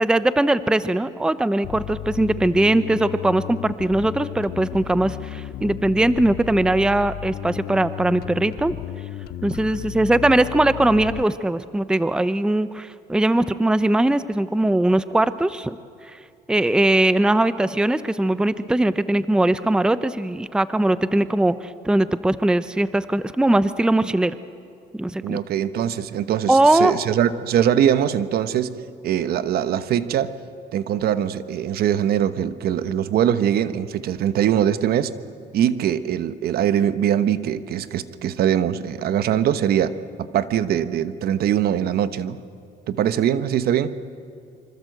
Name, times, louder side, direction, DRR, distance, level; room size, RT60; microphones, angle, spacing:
voice 1, 0.0-8.8 9.4-15.8 16.1-16.2 16.5-24.4 24.9-25.4 26.5-27.0, right 1 dB, 5° right, 14 dB, 0.6 m, -20 dB
Bass guitar, 1.6-11.2, left 14 dB, 65° left, 0.6 m, -34 dB
voice 2, 25.2-28.7 29.0-30.4 30.7-35.1 35.5-39.9 40.2-42.4 42.9-43.9, right 10 dB, 65° right, 12 dB, 1.1 m, -22 dB
26.0 x 25.0 x 8.0 m, 2.4 s
cardioid pair, 110°, 17 cm